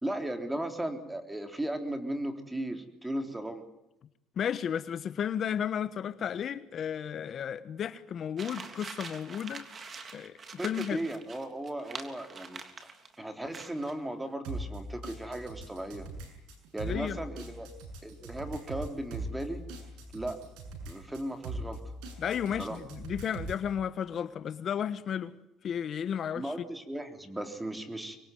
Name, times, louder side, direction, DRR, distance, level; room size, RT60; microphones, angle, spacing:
voice 1, 0.0-3.6 10.6-16.1 16.7-17.7 18.0-19.7 20.1-20.4 20.9-21.8 22.6-22.8 26.4-28.2, right 1 dB, 10° right, 6 dB, 3.8 m, -36 dB
voice 2, 4.4-9.6 10.1-11.0 16.8-17.2 22.2-25.3 25.6-26.7, left 8 dB, 50° left, 13 dB, 1.2 m, -33 dB
sound 1, 8.4-13.1 13.5-14.0, right 5 dB, 40° right, 3.3 m, -44 dB
sound 2, 14.4-23.7, right 2 dB, 85° right, 6.9 m, -41 dB
25.5 x 21.5 x 9.4 m, 0.89 s
supercardioid pair, 90°, 0 cm